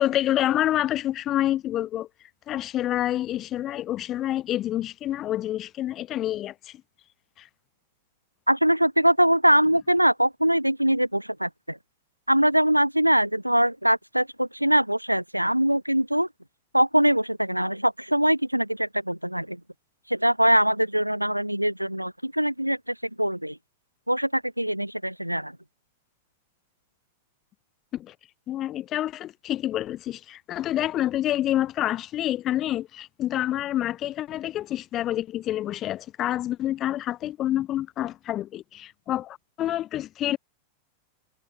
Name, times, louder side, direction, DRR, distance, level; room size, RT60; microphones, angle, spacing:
voice 1, 0.0-2.1 2.5-6.8 7.4-7.5 27.9-28.1 28.5-40.4, left 13 dB, 30° left, 5.3 m, -28 dB
voice 2, 8.5-11.8 12.3-16.3 16.7-19.6 20.1-23.6 24.1-25.6, equal, 90° right, 1.0 m, -22 dB
figure-of-eight pair, 90°, 0 cm